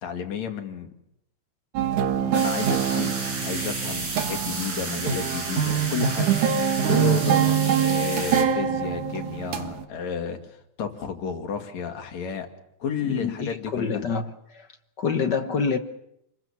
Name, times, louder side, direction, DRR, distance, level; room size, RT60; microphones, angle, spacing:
voice 1, 0.0-0.9 2.2-6.4 6.8-12.5 12.8-14.1, left 7 dB, 70° left, 3.5 m, -32 dB
sound 1, 1.8-9.8, right 8 dB, 90° right, 3.0 m, -24 dB
sound 2, 2.3-8.4, right 3 dB, 60° right, 6.5 m, -33 dB
voice 2, 13.1-14.7 15.0-15.8, left 5 dB, 50° left, 1.3 m, -27 dB
29.0 x 21.5 x 7.2 m
omnidirectional pair, 3.3 m